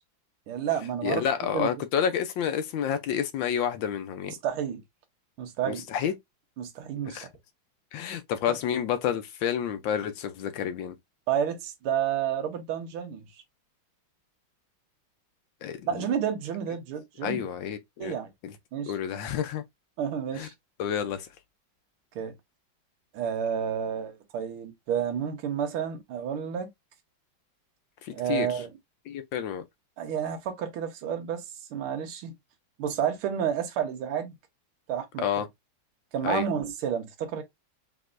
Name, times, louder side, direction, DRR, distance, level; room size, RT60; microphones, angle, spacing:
voice 1, 0.5-1.7 4.4-4.8 5.4-5.9 6.6-7.2 8.5-8.6 11.3-13.2 15.9-17.4 18.0-18.3 18.7-18.9 20.0-20.5 22.2-22.3 23.1-26.7 28.1-28.7 30.0-31.4 31.7-32.3 32.8-34.3 34.9-35.3 36.1-37.4, right 8 dB, 85° right, 1.8 m, -30 dB
voice 2, 1.0-4.3 5.7-6.1 7.1-7.3 7.9-11.0 15.6-16.0 17.2-18.1 18.4-18.5 18.9-19.6 20.3-20.5 20.8-21.3 28.0-28.6 29.1-29.6 35.2-35.5 36.2-36.4, left 8 dB, 75° left, 1.3 m, -29 dB
5.3 x 3.0 x 2.4 m
omnidirectional pair, 2.3 m